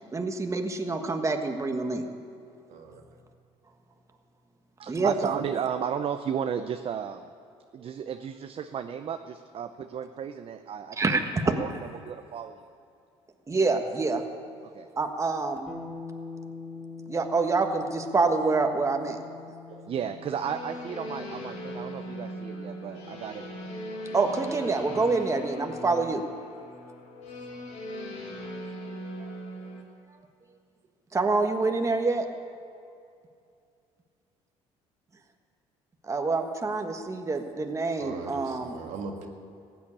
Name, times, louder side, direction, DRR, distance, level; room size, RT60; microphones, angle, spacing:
voice 1, 0.1-2.0 4.9-5.1 11.0-11.2 13.5-14.2 15.0-15.7 17.1-19.2 24.1-26.2 31.1-32.2 36.0-38.8, right 3 dB, 25° right, 4 dB, 1.4 m, -26 dB
voice 2, 2.7-3.0 38.0-39.3, right 4 dB, 75° right, 3 dB, 1.9 m, -39 dB
voice 3, 4.8-7.3 7.7-11.0 11.4-11.7 12.0-12.7 14.6-14.9 19.7-23.5 23.9-24.1, right 8 dB, 50° right, 7 dB, 0.7 m, -34 dB
sound 1, 15.7-25.4, left 4 dB, ahead, 3.4 m, -45 dB
sound 2, 20.4-29.8, equal, 70° left, 2.5 m, -39 dB
15.5 x 9.5 x 8.6 m, 2.4 s
supercardioid pair, 85°, 12 cm